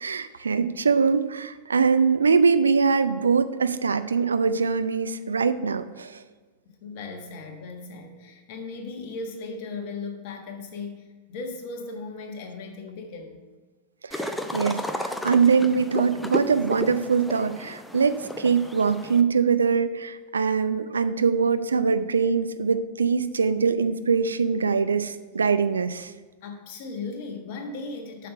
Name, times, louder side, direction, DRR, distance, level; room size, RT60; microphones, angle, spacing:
voice 1, 0.0-6.2 14.0-26.1, right 5 dB, 75° right, 12 dB, 0.4 m, -23 dB
voice 2, 6.6-13.5 26.4-28.3, left 3 dB, 45° left, 3 dB, 1.4 m, -37 dB
sound 1, 14.1-19.2, left 1 dB, 5° left, 0.6 m, -33 dB
7.5 x 6.5 x 5.6 m, 1.4 s
figure-of-eight pair, 90°, 0 cm